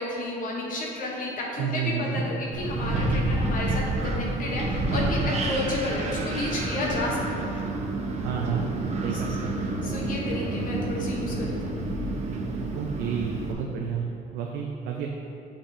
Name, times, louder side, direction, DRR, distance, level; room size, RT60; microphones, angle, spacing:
voice 1, 0.0-7.6 9.1-9.2 9.8-11.8, left 2 dB, 55° left, -2 dB, 0.9 m, -31 dB
voice 2, 1.6-2.2 8.2-8.7 9.0-9.3 12.7-15.1, right 7 dB, 80° right, 0 dB, 0.5 m, -30 dB
Wind, 2.5-13.5, right 2 dB, 40° right, 0.8 m, -29 dB
6.5 x 5.9 x 2.6 m, 2.6 s
cardioid pair, 110°, 17 cm